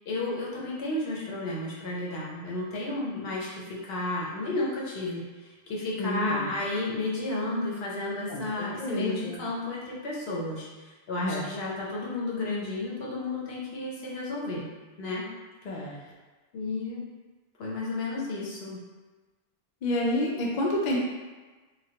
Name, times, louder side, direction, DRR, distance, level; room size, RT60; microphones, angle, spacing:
voice 1, 0.1-5.2 5.7-10.7 11.1-14.7 15.0-15.3 16.5-17.0 17.6-18.8, left 2 dB, 70° left, -5 dB, 1.0 m, -32 dB
voice 2, 6.0-6.6 8.3-9.4 11.2-11.5 15.6-16.0 19.8-21.0, left 1 dB, 55° left, -3 dB, 0.5 m, -29 dB
3.1 x 2.3 x 2.8 m, 1.3 s
omnidirectional pair, 1.1 m